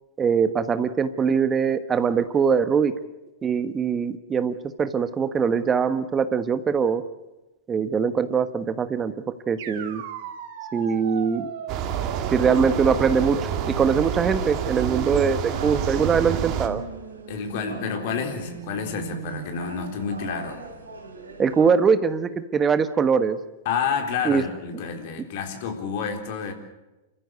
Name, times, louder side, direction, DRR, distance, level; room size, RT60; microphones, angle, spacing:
voice 1, 0.2-2.9 3.4-7.0 7.7-9.1 9.5-10.0 10.7-11.5 12.3-16.8 21.4-23.4 24.3-24.4, right 6 dB, 25° right, 11 dB, 1.2 m, -22 dB
sound 1, 9.6-19.5, right 7 dB, 60° right, 3.2 m, -37 dB
sound 2, 11.7-16.7, right 9 dB, 45° right, 2.3 m, -28 dB
sound 3, 14.5-21.8, right 3 dB, 85° right, 3.7 m, -42 dB
voice 2, 17.3-20.7 23.6-26.5, left 6 dB, 55° left, 4 dB, 3.9 m, -29 dB
29.0 x 14.5 x 8.1 m, 1.0 s
hypercardioid pair, 100°, 0 cm